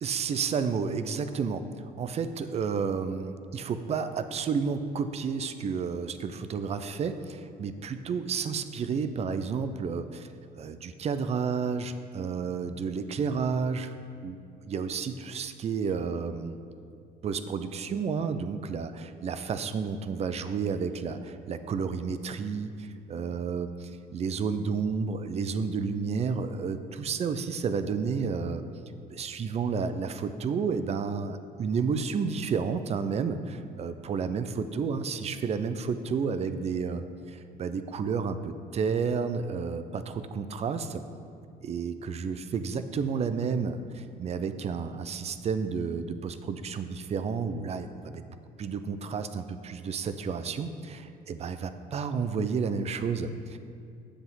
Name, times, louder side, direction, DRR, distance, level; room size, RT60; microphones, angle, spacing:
voice 1, 0.0-10.3 10.6-13.9 14.2-14.4 14.6-16.6 17.2-28.6 29.1-41.0 41.6-48.2 48.6-53.6, right 5 dB, 40° right, 10 dB, 0.5 m, -31 dB
9.9 x 7.6 x 3.7 m, 2.4 s
cardioid pair, 110°, 17 cm